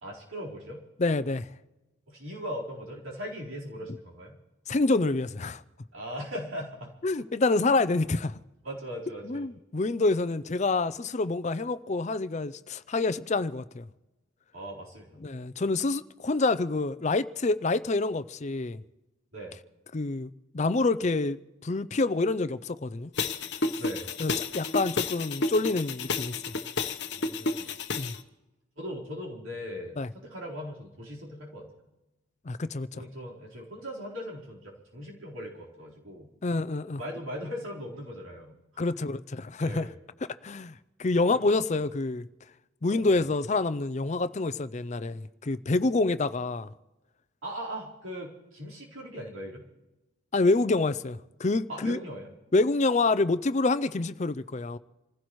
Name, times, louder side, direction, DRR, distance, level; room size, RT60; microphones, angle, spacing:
voice 1, 0.0-0.8 2.1-4.4 5.9-6.9 7.4-7.5 8.6-9.5 14.5-15.2 19.3-19.5 23.8-24.1 27.1-27.7 28.8-31.7 32.9-36.3 36.9-38.6 38.9-39.0 39.6-40.0 43.0-43.2 47.4-49.6 51.7-52.3, equal, 90° right, 4.2 m, -39 dB
voice 2, 1.0-1.5 4.7-5.6 7.0-8.4 9.2-13.9 15.2-18.8 19.9-23.1 24.2-26.6 28.0-28.1 30.0-30.1 32.5-33.0 36.4-37.0 38.8-39.9 40.4-42.2 42.8-46.7 50.3-52.0 52.5-54.8, left 3 dB, 35° left, 0.5 m, -27 dB
sound 1, 23.2-28.2, left 3 dB, 55° left, 1.0 m, -31 dB
27.5 x 15.5 x 3.1 m
head